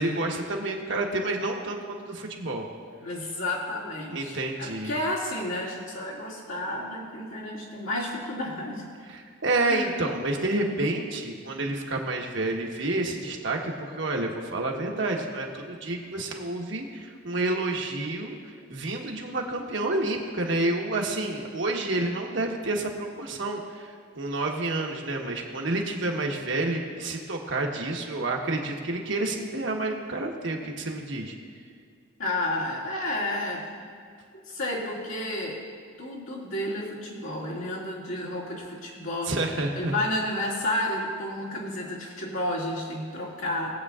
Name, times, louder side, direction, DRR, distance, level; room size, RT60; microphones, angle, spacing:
voice 1, 0.0-2.7 4.1-4.9 9.1-31.3 39.3-39.9, right 2 dB, 60° right, 0 dB, 1.2 m, -29 dB
voice 2, 3.0-8.9 9.7-9.9 32.2-33.8 34.5-35.6 36.0-39.3 39.7-43.7, left 1 dB, 80° left, -5 dB, 2.3 m, -31 dB
20.0 x 8.2 x 2.4 m, 2.2 s
head